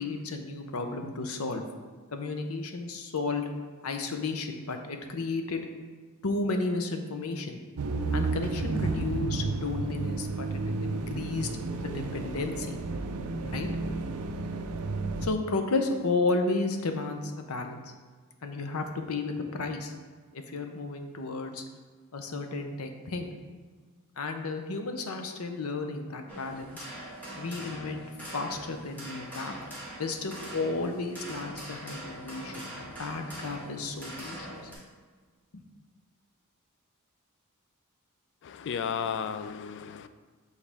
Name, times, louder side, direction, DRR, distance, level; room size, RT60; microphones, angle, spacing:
voice 1, 0.0-1.6 2.1-3.5 3.8-5.6 6.2-7.6 8.1-11.5 11.8-12.8 13.5-13.7 15.2-17.9 18.4-19.9 20.3-21.6 22.1-23.3 24.2-26.8 27.3-28.1 28.3-29.5 30.0-34.6 35.5-35.6, left 3 dB, 75° left, 0.7 m, -33 dB
sound 1, 7.8-15.3, right 3 dB, 80° right, 0.4 m, -32 dB
sound 2, 26.3-34.8, right 1 dB, 10° left, 1.8 m, -42 dB
voice 2, 38.4-40.1, left 7 dB, 55° left, 0.3 m, -33 dB
7.2 x 4.1 x 3.4 m
head